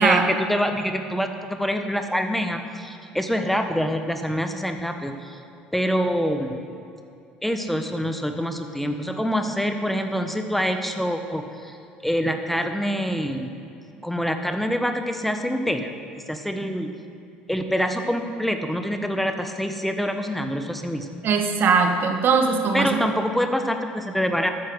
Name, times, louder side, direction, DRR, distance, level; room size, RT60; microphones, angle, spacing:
voice 1, 0.0-5.4 5.7-6.6 7.4-11.8 12.0-13.5 14.0-15.9 16.3-16.9 17.5-21.1 22.7-24.5, equal, 5° left, 6 dB, 1.1 m, -25 dB
voice 2, 21.2-23.0, right 5 dB, 50° right, 5 dB, 1.5 m, -20 dB
13.5 x 9.5 x 6.2 m, 2.6 s
hypercardioid pair, 65°, 5 cm